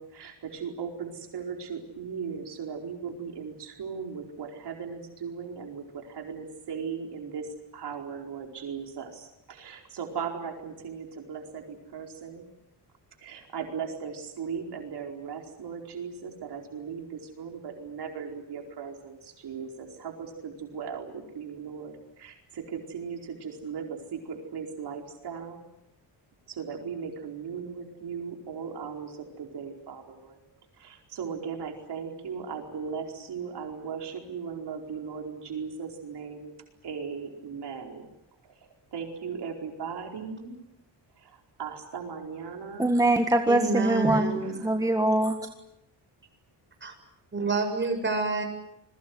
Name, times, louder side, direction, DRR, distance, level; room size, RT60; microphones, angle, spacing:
voice 1, 0.0-7.5 7.7-12.4 13.2-25.6 26.5-30.4 30.8-36.5 36.8-38.0 38.9-40.6 41.2-42.9 44.4-44.7, right 6 dB, 65° right, 2 dB, 4.7 m, -38 dB
voice 2, 42.8-45.4, right 1 dB, 10° right, 4 dB, 1.7 m, -23 dB
voice 3, 43.5-44.6 46.8-46.9 47.3-48.4, right 3 dB, 25° right, 4 dB, 7.4 m, -28 dB
28.5 x 22.0 x 8.1 m, 0.82 s
cardioid pair, 135°, 43 cm